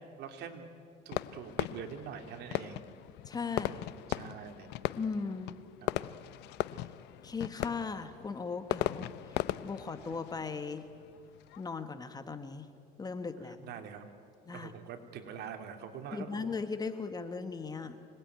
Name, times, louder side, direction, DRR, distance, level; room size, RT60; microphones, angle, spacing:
voice 1, 0.2-0.7 1.0-3.0 3.5-4.7 5.8-5.9 13.6-14.1 14.5-16.5, right 7 dB, 65° right, 5 dB, 2.8 m, -45 dB
Fireworks, 1.1-11.7, left 15 dB, 70° left, 0.7 m, -38 dB
voice 2, 3.2-3.8 5.0-5.6 7.2-10.9 11.6-12.7 13.0-13.7 14.5-14.7 16.1-18.0, left 4 dB, 20° left, 10 dB, 1.4 m, -38 dB
25.5 x 19.5 x 9.3 m, 2.4 s
cardioid pair, 130°, 18 cm